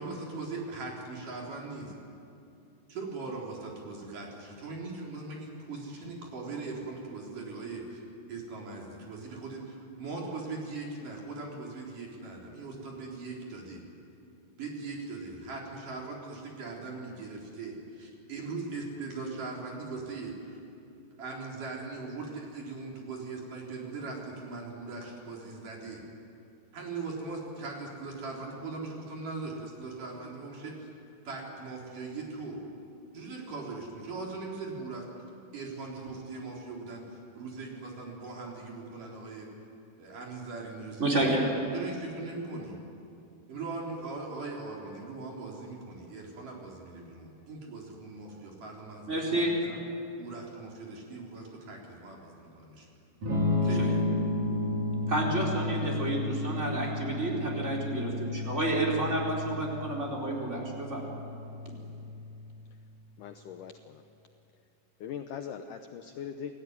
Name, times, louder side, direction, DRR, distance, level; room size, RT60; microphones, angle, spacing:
voice 1, 0.0-1.9 2.9-8.0 8.3-13.8 14.6-20.6 21.2-26.0 26.7-30.9 31.3-32.6 33.1-35.1 35.5-39.5 40.0-41.4 41.7-42.8 43.5-49.8 50.2-52.9 53.6-54.1, right 3 dB, 50° right, -2 dB, 5.2 m, -40 dB
voice 2, 41.0-41.5 49.1-49.6 53.8-53.9 55.1-61.0, right 2 dB, 15° right, -2 dB, 4.4 m, -30 dB
Electric guitar / Strum, 53.2-63.0, left 2 dB, 35° right, 5.6 m, -32 dB
voice 3, 63.2-64.0 65.0-66.5, left 8 dB, 85° left, 7 dB, 1.8 m, -40 dB
29.0 x 19.0 x 9.7 m, 2.7 s
omnidirectional pair, 4.9 m